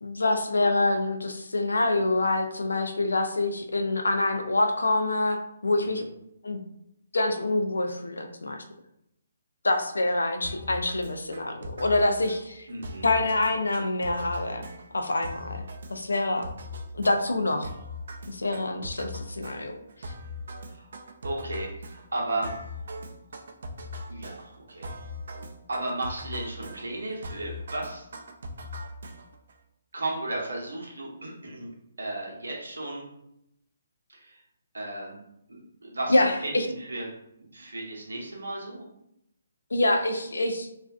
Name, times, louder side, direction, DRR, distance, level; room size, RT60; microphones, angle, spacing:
voice 1, 0.0-6.1 6.4-6.6 7.1-8.6 9.6-12.7 13.0-14.6 14.9-15.6 15.9-16.5 16.9-17.7 18.3-19.7 20.0-20.1 36.1-36.7 39.7-40.7, left 2 dB, 85° left, 5 dB, 0.4 m, -26 dB
sound 1, 10.4-29.5, left 1 dB, 65° right, 0.4 m, -40 dB
voice 2, 12.7-13.2 20.7-20.9 21.2-22.5 24.1-24.9 25.7-28.1 29.9-31.7 32.0-33.1 34.1-34.4 34.7-35.2 35.5-37.1 37.4-38.8, right 2 dB, 85° right, -1 dB, 0.8 m, -34 dB
2.4 x 2.2 x 2.4 m, 0.79 s
hypercardioid pair, 145°, 0 cm